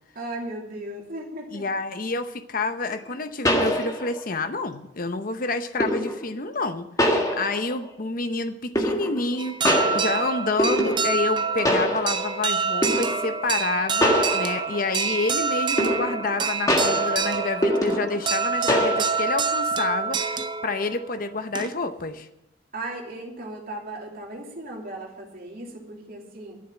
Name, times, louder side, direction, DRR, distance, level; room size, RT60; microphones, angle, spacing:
voice 1, 0.1-1.6 22.7-26.6, right 1 dB, 50° right, -1 dB, 3.0 m, -36 dB
voice 2, 1.5-22.3, left 3 dB, 45° left, 9 dB, 0.8 m, -28 dB
sound 1, 2.8-2.9 3.4-4.3 5.8-6.2 7.0-7.9 8.7-9.3 9.6-11.3 11.6-12.4 12.8-13.3 14.0-14.9 15.8-16.4 16.7-18.3 18.7-19.3, equal, 20° left, 1.7 m, -24 dB
sound 2, 9.4-22.0, right 5 dB, 25° right, 0.6 m, -27 dB
12.5 x 7.1 x 9.0 m, 0.88 s
head